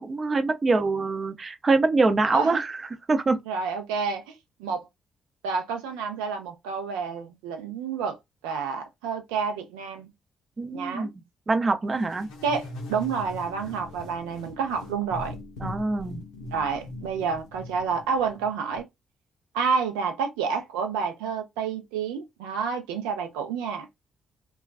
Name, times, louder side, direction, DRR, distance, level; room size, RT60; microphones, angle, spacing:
voice 1, 0.0-2.8 3.1-3.4 10.6-11.1 11.5-12.3 15.6-16.2, right 3 dB, 40° right, 0.6 m, -24 dB
voice 2, 2.3-2.6 3.5-4.3 4.6-4.8 5.4-8.2 8.4-10.1 10.7-11.1 12.4-15.4 16.5-18.9 19.5-23.9, right 5 dB, 80° right, 0.5 m, -29 dB
sound 1, 12.0-18.8, left 2 dB, 80° left, 0.6 m, -41 dB
2.3 x 2.2 x 2.4 m
hypercardioid pair, 40°, 0 cm